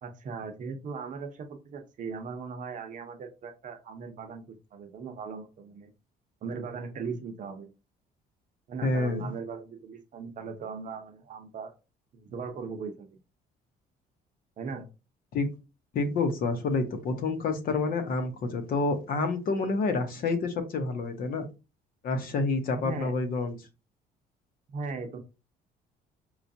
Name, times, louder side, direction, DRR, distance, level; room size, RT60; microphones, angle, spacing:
voice 1, 0.0-4.4 4.7-5.9 6.4-7.7 8.7-11.7 12.1-13.1 14.6-14.9 22.8-23.1 24.7-25.2, right 5 dB, 50° right, 6 dB, 0.7 m, -38 dB
voice 2, 8.8-9.3 15.3-15.5 15.9-21.4 22.0-23.6, left 3 dB, 60° left, 7 dB, 0.9 m, -28 dB
4.5 x 2.4 x 2.6 m, 0.29 s
cardioid pair, 110°, 17 cm